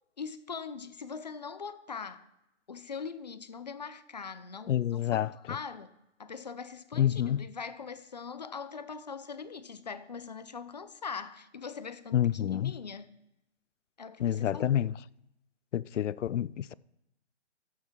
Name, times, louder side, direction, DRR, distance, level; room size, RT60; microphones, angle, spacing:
voice 1, 0.2-2.3 2.7-5.9 6.2-13.1 14.0-14.8, left 5 dB, 40° left, 0.5 m, -41 dB
voice 2, 4.7-5.3 7.0-7.5 12.1-12.7 14.2-14.9 15.7-16.7, left 11 dB, 85° left, 0.5 m, -28 dB
12.0 x 8.2 x 4.5 m
hypercardioid pair, 170°, 35 cm